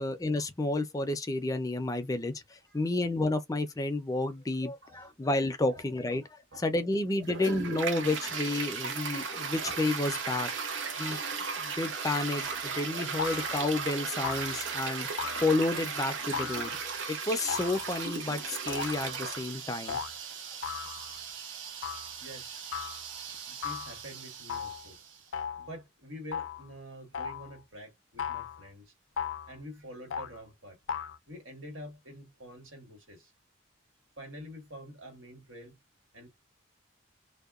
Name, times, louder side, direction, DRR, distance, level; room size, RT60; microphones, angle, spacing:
voice 1, 0.0-6.2 6.6-10.5 11.0-11.2 11.6-16.8 17.1-20.0, left 2 dB, 20° left, 0.4 m, -31 dB
voice 2, 4.8-5.2 5.7-5.8 6.1-6.2 6.5-6.6 22.2-22.7 23.5-25.0 25.6-28.9 29.5-30.8 31.3-33.3 34.2-35.8 36.1-36.3, equal, 90° right, 1.7 m, -47 dB
Toilet flush, 7.2-25.2, right 5 dB, 70° right, 0.7 m, -37 dB
sound 1, 12.4-12.7 13.2-13.7 14.2-14.7 15.2-15.8 16.3-16.9 17.5-18.2 18.7-19.2 19.9-20.1 20.6-21.2 21.8-22.1 22.7-23.0 23.6-24.0 24.5-24.9 25.3-25.7 26.3-26.7 27.1-27.5 28.2-28.6 29.2-29.5 30.1-30.4 30.9-31.2, left 7 dB, 80° left, 0.5 m, -37 dB
2.7 x 2.1 x 2.3 m
head